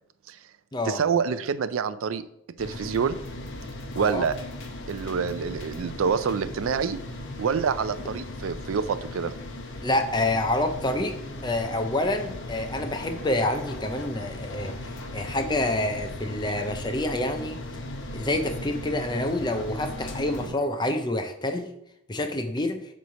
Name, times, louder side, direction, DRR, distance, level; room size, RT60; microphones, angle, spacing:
voice 1, 0.9-2.2 2.6-3.2 4.0-4.3 4.9-7.0 7.4-9.3 20.4-20.5, right 6 dB, 80° right, 14 dB, 0.4 m, -27 dB
sound 1, 2.6-20.5, left 1 dB, 65° left, 0.9 m, -37 dB
voice 2, 9.8-11.1 11.4-17.6 18.1-21.7 22.1-22.8, left 1 dB, 20° left, 7 dB, 0.6 m, -27 dB
8.2 x 3.2 x 5.7 m, 0.79 s
head